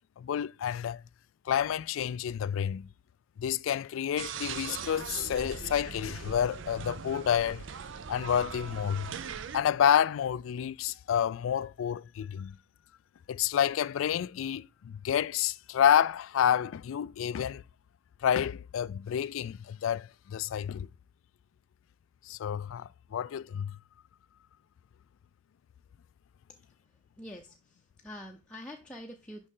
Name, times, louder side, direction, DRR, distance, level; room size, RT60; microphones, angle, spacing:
voice 1, 0.2-1.0 1.5-2.9 3.4-7.6 8.1-9.2 9.5-12.6 13.3-17.6 18.2-20.9 22.3-23.8, left 9 dB, 85° left, 0.3 m, -29 dB
sound 1, 4.2-9.6, right 6 dB, 65° right, 0.5 m, -40 dB
voice 2, 26.7-29.5, left 1 dB, 5° left, 0.7 m, -46 dB
6.4 x 5.4 x 3.7 m
head